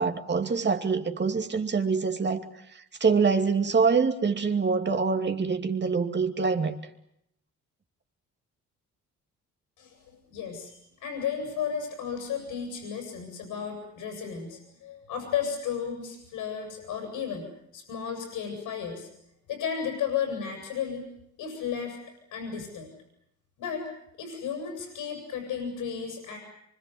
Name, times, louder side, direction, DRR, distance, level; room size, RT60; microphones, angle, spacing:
voice 1, 0.0-2.4 2.7-6.8, right 5 dB, 35° right, 2.6 m, -25 dB
voice 2, 9.8-17.5 17.7-19.1 19.5-21.0 21.4-22.0 22.3-22.9 23.6-23.9 24.2-26.4, left 7 dB, 90° left, 7.5 m, -33 dB
25.0 x 25.0 x 7.9 m
cardioid pair, 90°, 30 cm